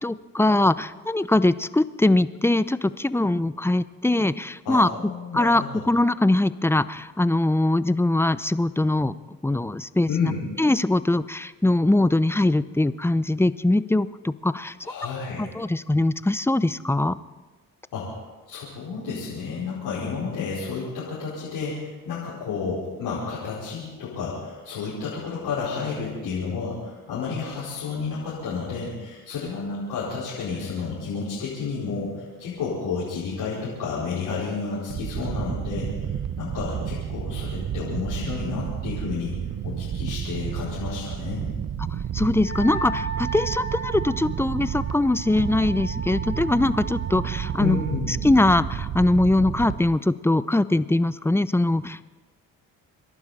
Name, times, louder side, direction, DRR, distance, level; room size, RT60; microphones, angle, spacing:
voice 1, 0.0-4.9 5.3-9.2 9.4-10.3 10.6-14.7 15.4-17.2 42.1-47.8 48.1-52.0, left 2 dB, 5° left, 15 dB, 0.6 m, -22 dB
voice 2, 4.6-5.8 10.1-10.4 14.8-15.5 17.9-18.1 18.5-39.4 39.6-41.5 47.6-48.1, left 5 dB, 75° left, -8 dB, 5.0 m, -31 dB
sound 1, 34.9-50.0, right 9 dB, 45° right, 0.9 m, -31 dB
Wind instrument woodwind instrument, 42.4-48.0, right 3 dB, 25° left, 1.6 m, -36 dB
27.5 x 12.0 x 4.3 m, 1.2 s
supercardioid pair, 55°, 38 cm